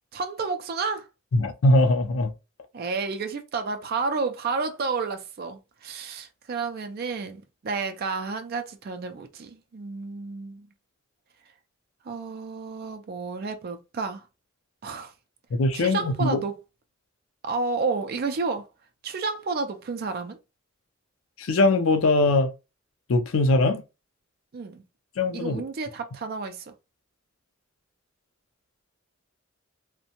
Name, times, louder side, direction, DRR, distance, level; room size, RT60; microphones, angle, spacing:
voice 1, 0.1-1.1 2.7-10.7 12.0-14.2 14.8-15.1 15.7-16.5 17.4-18.7 19.0-20.4 24.5-24.8 25.3-26.7, right 4 dB, 50° right, 0.4 m, -31 dB
voice 2, 1.3-2.3 15.6-16.4 21.4-22.5 23.1-23.8 25.2-25.6, left 2 dB, 75° left, 0.5 m, -21 dB
2.6 x 2.1 x 2.8 m
head